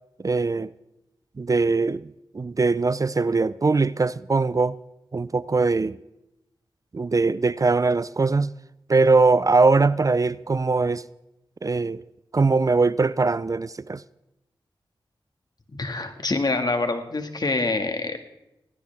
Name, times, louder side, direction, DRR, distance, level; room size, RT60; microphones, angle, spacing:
voice 1, 0.2-0.7 1.4-2.1 2.3-4.8 5.1-6.0 6.9-8.5 8.9-11.0 11.6-12.0 12.3-14.0, right 3 dB, 40° right, 0.4 m, -21 dB
voice 2, 15.8-18.2, left 3 dB, 50° left, 2.0 m, -25 dB
18.5 x 18.0 x 3.6 m
cardioid pair, 40°, 9 cm